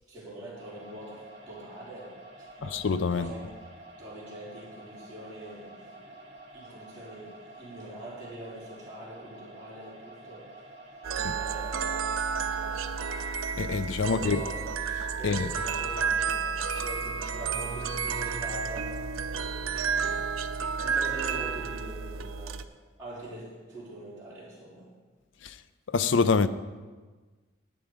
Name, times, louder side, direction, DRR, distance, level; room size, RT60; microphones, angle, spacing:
voice 1, 0.1-2.8 3.1-3.5 4.0-6.2 6.5-10.7 11.3-12.1 12.4-12.8 14.0-14.7 15.1-20.2 20.8-22.7 23.0-24.9, right 1 dB, 10° right, 3.8 m, -44 dB
sound 1, 0.5-13.3, right 2 dB, 30° right, 2.9 m, -49 dB
voice 2, 2.7-3.3 13.6-14.4 15.2-15.5 25.4-25.5 25.9-26.5, left 4 dB, 65° left, 0.5 m, -25 dB
sound 2, 11.0-22.6, right 5 dB, 85° right, 0.5 m, -31 dB
11.0 x 9.5 x 4.9 m
head